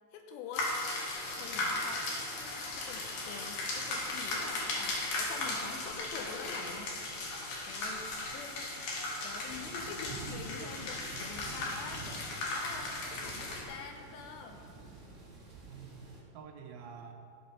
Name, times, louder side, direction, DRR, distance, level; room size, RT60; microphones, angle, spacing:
voice 1, 0.1-0.7 1.3-7.0 7.7-8.7 9.2-14.6, left 5 dB, 90° left, 3 dB, 3.0 m, -46 dB
sound 1, 0.5-13.6, left 2 dB, 65° left, 3.2 m, -37 dB
sound 2, 1.1-16.2, right 3 dB, 30° right, 1.3 m, -51 dB
voice 2, 15.7-17.1, right 6 dB, 75° right, 3 dB, 2.3 m, -49 dB
14.0 x 5.4 x 5.8 m, 2.5 s
omnidirectional pair, 4.9 m